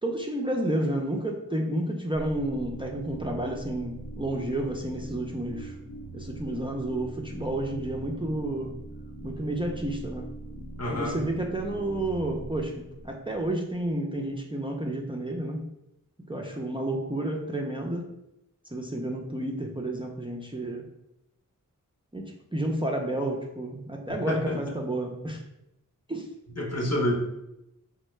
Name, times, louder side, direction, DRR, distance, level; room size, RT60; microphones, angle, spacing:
voice 1, 0.0-5.8 6.1-8.8 9.2-10.3 10.9-15.6 16.3-18.1 18.7-20.9 22.1-25.4 26.1-26.3, right 1 dB, 15° right, 1 dB, 0.4 m, -31 dB
sound 1, 2.1-13.9, right 2 dB, 75° left, 0.8 m, -42 dB
voice 2, 10.8-11.2 24.3-24.6 26.6-27.1, left 1 dB, 50° left, -1 dB, 0.9 m, -28 dB
4.2 x 2.1 x 3.1 m, 0.86 s
wide cardioid pair, 55°, 33 cm